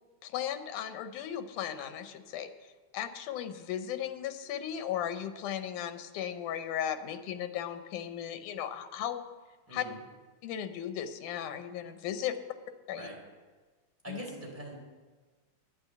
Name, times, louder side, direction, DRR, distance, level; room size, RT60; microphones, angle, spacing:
voice 1, 0.2-2.5 2.9-9.2 9.7-9.8 10.4-12.4 12.9-13.1 14.1-14.3, left 10 dB, 85° left, 9 dB, 2.4 m, -36 dB
voice 2, 9.7-10.0 12.9-13.2 14.0-14.7, right 1 dB, 5° right, -3 dB, 3.5 m, -42 dB
10.5 x 9.7 x 7.9 m, 1.4 s
omnidirectional pair, 3.5 m